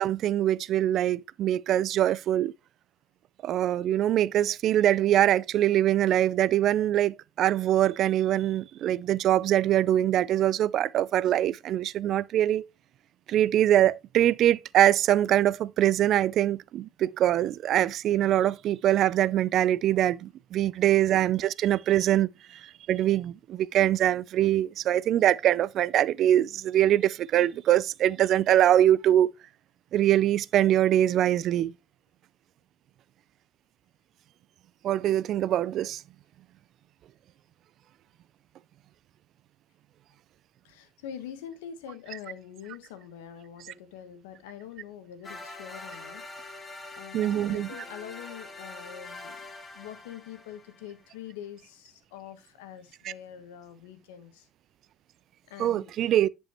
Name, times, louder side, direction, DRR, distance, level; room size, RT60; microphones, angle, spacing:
voice 1, 0.0-2.5 3.4-12.6 13.3-22.3 22.9-29.3 29.9-31.7 34.8-36.0 47.1-47.7 53.0-53.1 55.6-56.3, right 12 dB, 60° right, 0.4 m, -23 dB
voice 2, 40.6-49.4 49.7-54.5 55.5-55.9, left 9 dB, 90° left, 1.3 m, -44 dB
sound 1, 45.2-51.2, left 2 dB, 30° left, 2.2 m, -44 dB
10.5 x 5.3 x 3.0 m
supercardioid pair, 70°, 0 cm